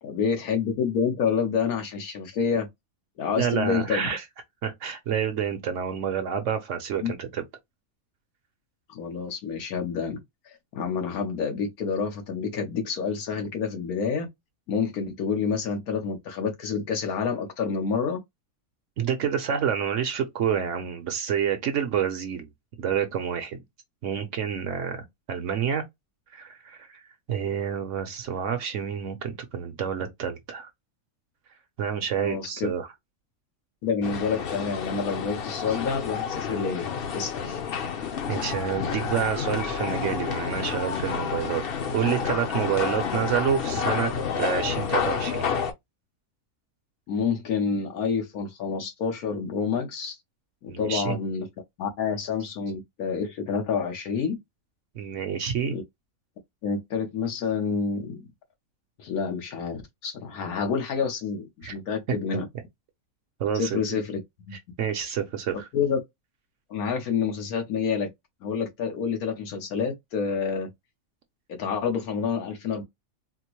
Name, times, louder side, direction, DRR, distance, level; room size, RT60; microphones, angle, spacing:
voice 1, 0.0-2.7 3.2-4.2 7.0-7.1 8.9-10.2 10.5-14.3 14.7-18.2 32.1-32.7 33.8-36.9 37.1-37.6 47.1-50.2 50.6-51.5 51.8-54.4 55.6-55.8 56.6-58.2 59.0-62.4 63.5-64.2 64.5-64.6 65.7-66.0 66.7-68.1 68.4-70.7 71.5-72.8, left 6 dB, 90° left, 1.4 m, -28 dB
voice 2, 3.4-4.2 4.6-7.4 19.0-22.5 22.8-23.6 24.0-25.8 26.3-27.0 27.3-30.7 31.8-32.9 38.3-41.6 41.9-44.1 44.4-45.5 50.7-51.2 54.9-55.8 61.6-61.7 63.4-64.0 64.8-65.7, right 8 dB, 65° right, 1.0 m, -28 dB
sound 1, 34.0-45.7, left 6 dB, 55° left, 0.7 m, -29 dB
4.3 x 2.0 x 2.9 m
omnidirectional pair, 1.5 m